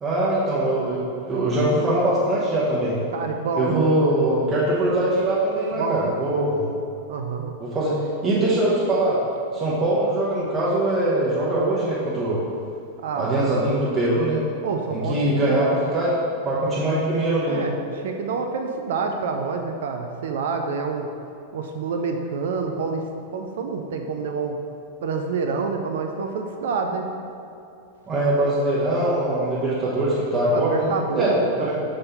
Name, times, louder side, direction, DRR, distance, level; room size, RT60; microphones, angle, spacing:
voice 1, 0.0-3.0 3.6-6.7 7.6-7.9 8.2-9.2 9.5-12.4 13.1-14.4 14.9-16.1 16.4-17.7 28.1-31.6, right 1 dB, 20° right, -8 dB, 1.0 m, -22 dB
voice 2, 3.1-3.8 5.8-6.1 7.1-7.6 13.0-13.5 14.6-15.6 17.5-21.1 21.5-23.0 23.3-24.6 25.0-27.1 30.5-31.8, right 4 dB, 60° right, 4 dB, 0.4 m, -27 dB
6.6 x 3.7 x 4.1 m, 2.6 s
figure-of-eight pair, 90°, 0 cm